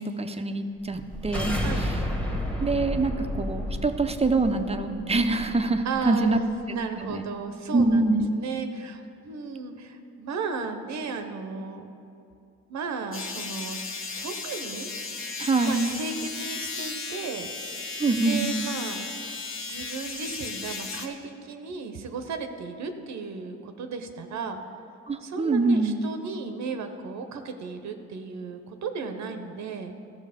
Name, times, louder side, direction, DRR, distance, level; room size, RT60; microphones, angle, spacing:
voice 1, 0.0-1.9 2.6-6.4 7.0-7.2 7.7-8.3 15.4-15.9 18.0-18.5 25.1-26.0, right 3 dB, 20° right, 7 dB, 0.6 m, -25 dB
sound 1, 0.9-6.0, left 1 dB, 5° left, 1.3 m, -31 dB
voice 2, 1.5-1.9 5.8-6.4 6.7-11.9 12.7-13.8 14.2-15.3 15.6-17.5 18.2-19.0 19.2-19.4 19.6-24.6 25.2-29.9, right 4 dB, 65° right, 7 dB, 0.9 m, -35 dB
sound 2, 13.1-21.1, left 4 dB, 45° left, 1.0 m, -35 dB
13.0 x 6.3 x 5.0 m, 2.5 s
cardioid pair, 90°, 30 cm